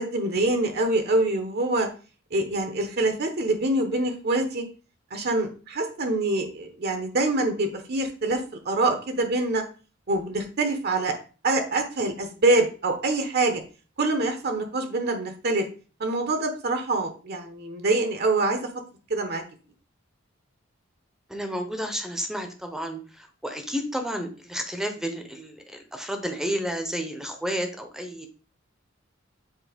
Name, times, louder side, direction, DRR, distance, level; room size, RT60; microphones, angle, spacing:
voice 1, 0.0-1.9 2.3-4.6 5.1-8.4 8.6-9.6 10.1-11.1 11.4-13.6 14.0-15.6 16.0-18.6 19.1-19.4, right 2 dB, 55° right, 5 dB, 1.0 m, -25 dB
voice 2, 21.3-25.6 25.9-28.3, equal, ahead, 5 dB, 0.8 m, -31 dB
7.5 x 2.8 x 5.1 m, 0.36 s
head